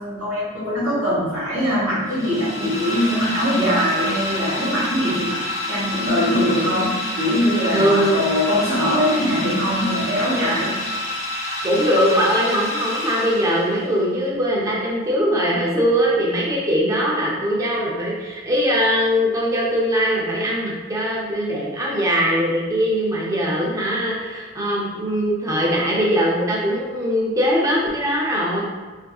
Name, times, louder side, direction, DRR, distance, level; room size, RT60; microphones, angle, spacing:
voice 1, 0.0-10.7, equal, 80° right, -7 dB, 1.2 m, -22 dB
sound 1, 2.1-13.9, left 1 dB, 30° left, 0.7 m, -28 dB
voice 2, 7.7-8.2 11.6-28.6, equal, 15° right, -4 dB, 0.5 m, -21 dB
3.4 x 2.6 x 2.3 m, 1.4 s
head